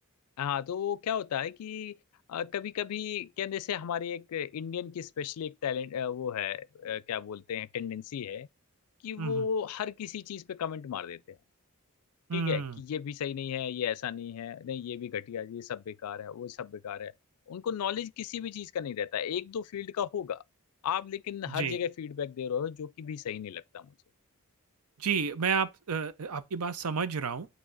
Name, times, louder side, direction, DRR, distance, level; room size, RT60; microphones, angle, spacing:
voice 1, 0.4-2.0 2.3-8.5 9.0-11.4 12.3-17.1 17.5-20.4 20.8-23.9, left 8 dB, 85° left, 0.4 m, -34 dB
voice 2, 12.3-12.8 21.5-21.8 25.0-27.5, right 6 dB, 80° right, 0.6 m, -31 dB
8.7 x 3.2 x 3.9 m
head